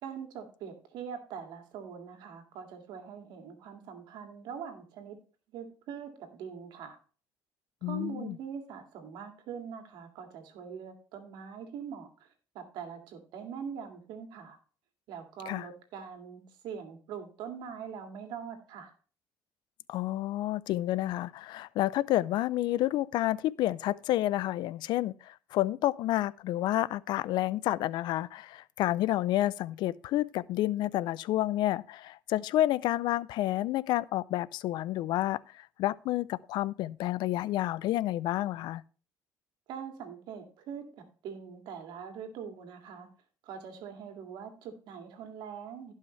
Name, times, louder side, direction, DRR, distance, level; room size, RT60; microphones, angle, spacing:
voice 1, 0.0-5.2 5.5-7.0 7.8-12.3 12.5-14.6 15.1-18.9 39.7-40.9 41.2-43.1 43.4-45.9, right 7 dB, 85° right, 2.2 m, -43 dB
voice 2, 7.8-8.4 15.5-15.7 19.9-38.8, left 14 dB, 80° left, 0.4 m, -30 dB
16.5 x 5.7 x 3.2 m
cardioid pair, 90°, 8 cm